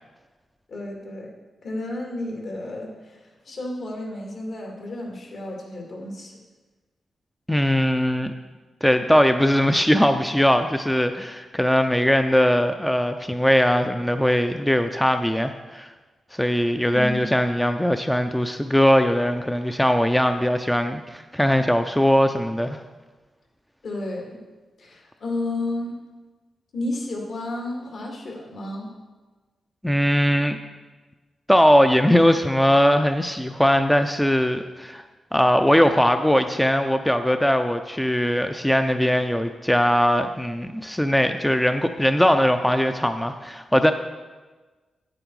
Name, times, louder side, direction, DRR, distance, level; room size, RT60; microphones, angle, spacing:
voice 1, 0.7-1.3 1.6-6.3 16.9-17.3 23.8-24.3 24.8-26.0 26.7-28.9, left 2 dB, 65° left, 0 dB, 2.4 m, -32 dB
voice 2, 7.5-8.3 8.8-15.9 16.3-22.8 29.8-30.6 31.5-35.0 35.3-43.9, equal, 5° left, 7 dB, 0.4 m, -20 dB
9.2 x 8.9 x 4.7 m, 1.3 s
wide cardioid pair, 115°, 0 cm